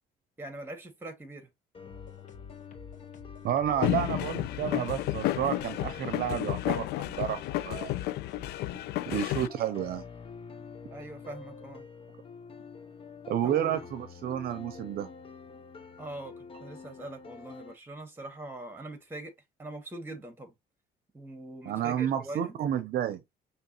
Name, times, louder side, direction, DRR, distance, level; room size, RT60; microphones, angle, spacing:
voice 1, 0.4-1.5 10.9-11.9 13.4-13.9 16.0-19.3 19.6-20.5 21.1-22.6, right 2 dB, 15° right, 1.8 m, -42 dB
sound 1, 1.7-17.7, left 6 dB, 35° left, 0.8 m, -47 dB
sound 2, 1.9-8.7, left 4 dB, 50° left, 1.4 m, -50 dB
voice 2, 3.4-7.9 9.1-10.0 13.3-15.1 21.7-23.2, right 10 dB, 65° right, 0.7 m, -31 dB
sound 3, 3.8-9.5, left 16 dB, 75° left, 0.4 m, -31 dB
5.8 x 3.0 x 2.9 m
cardioid pair, 110°, 17 cm